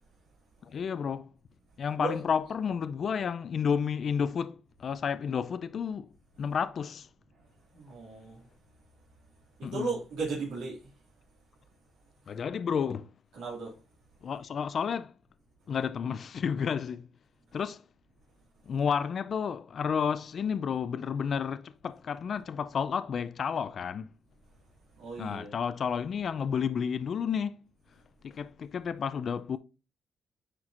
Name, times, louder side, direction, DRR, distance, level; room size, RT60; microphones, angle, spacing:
voice 1, 0.6-1.3 1.8-6.1 6.4-7.1 9.6-9.9 12.3-13.1 14.2-15.1 15.7-17.1 17.5-17.8 18.7-24.1 25.2-27.6 28.2-29.6, left 7 dB, 55° left, 0.4 m, -31 dB
voice 2, 7.7-8.4 9.6-10.9 13.4-13.8 25.0-25.5, right 4 dB, 90° right, 2.2 m, -35 dB
9.4 x 4.4 x 2.5 m
cardioid pair, 90°, 0 cm